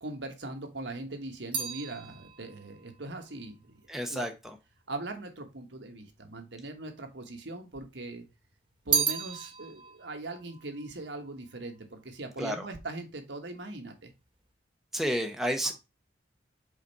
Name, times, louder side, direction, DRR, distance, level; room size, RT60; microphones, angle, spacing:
voice 1, 0.0-3.8 4.1-4.3 4.9-8.3 8.8-14.1, right 2 dB, 75° right, 5 dB, 1.4 m, -40 dB
sound 1, 0.6-5.0 5.8-6.6 6.9-8.0 8.3-11.9 12.1-12.7, right 7 dB, 30° right, 1.2 m, -35 dB
voice 2, 3.9-4.6 12.4-12.7 14.9-15.7, equal, ahead, 4 dB, 0.8 m, -31 dB
5.1 x 4.1 x 5.3 m, 0.25 s
head